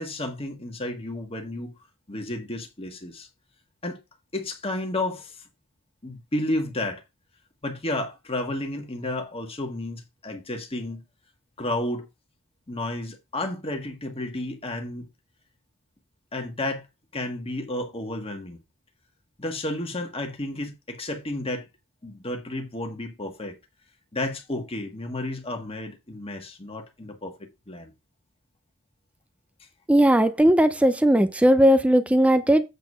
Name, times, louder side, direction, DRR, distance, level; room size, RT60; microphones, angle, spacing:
voice 1, 0.0-1.7 2.1-3.3 3.8-4.0 4.3-5.4 6.0-7.0 7.6-11.0 11.6-12.1 12.7-15.1 16.3-16.8 17.1-18.6 19.4-21.6 22.0-23.6 24.1-27.3 27.7-27.9, left 1 dB, 25° left, 1.5 m, -32 dB
voice 2, 29.9-32.6, equal, 5° right, 0.4 m, -18 dB
8.0 x 4.1 x 5.4 m
head